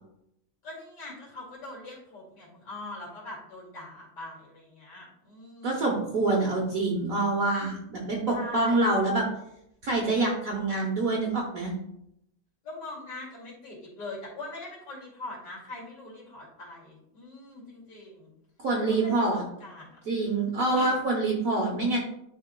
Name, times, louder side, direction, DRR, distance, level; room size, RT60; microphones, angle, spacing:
voice 1, 0.6-5.9 8.3-8.8 12.6-18.3 18.9-20.0 20.7-21.0, left 2 dB, 55° left, -5 dB, 2.9 m, -42 dB
voice 2, 5.6-9.2 9.8-11.7 18.6-19.4 20.1-22.0, right 2 dB, 50° right, -1 dB, 1.1 m, -26 dB
10.5 x 4.0 x 2.2 m, 0.78 s
omnidirectional pair, 2.2 m